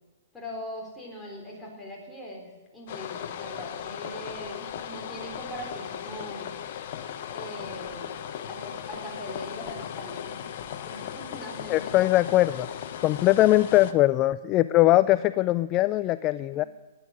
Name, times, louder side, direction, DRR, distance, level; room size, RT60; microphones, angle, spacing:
voice 1, 0.3-6.5 7.3-8.1 8.5-10.4 10.7-12.0, equal, 10° left, -2 dB, 4.1 m, -41 dB
sound 1, 2.9-13.9, left 9 dB, 50° left, 1.1 m, -37 dB
voice 2, 11.7-12.7 13.0-16.6, left 16 dB, 30° left, 16 dB, 0.3 m, -21 dB
18.5 x 8.5 x 6.6 m, 1.2 s
hypercardioid pair, 135°, 0 cm